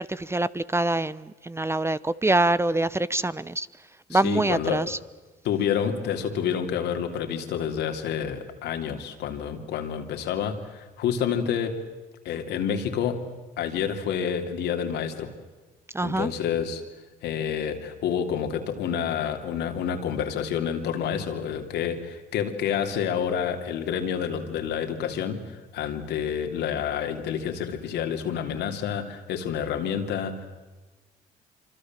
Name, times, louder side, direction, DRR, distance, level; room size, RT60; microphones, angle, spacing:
voice 1, 0.0-3.7 4.1-5.0 15.9-16.3, right 2 dB, 15° right, 17 dB, 0.8 m, -25 dB
voice 2, 4.1-4.9 5.4-11.9 12.2-13.3 13.6-15.3 16.0-16.8 17.2-30.5, left 8 dB, 80° left, 5 dB, 3.1 m, -28 dB
26.5 x 25.5 x 7.6 m, 1.3 s
supercardioid pair, 75°, 17 cm